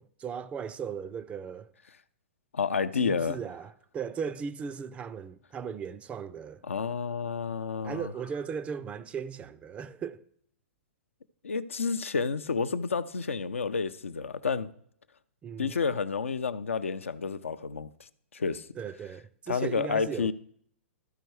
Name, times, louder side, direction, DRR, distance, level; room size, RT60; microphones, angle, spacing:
voice 1, 0.0-1.7 3.0-6.6 7.8-10.2 15.4-15.8 18.8-20.3, right 6 dB, 15° right, 0.4 m, -37 dB
voice 2, 2.5-3.4 6.6-8.1 11.4-14.7 15.6-18.7 19.5-20.3, left 5 dB, 80° left, 0.5 m, -30 dB
12.5 x 4.6 x 4.6 m
figure-of-eight pair, 110°, 7 cm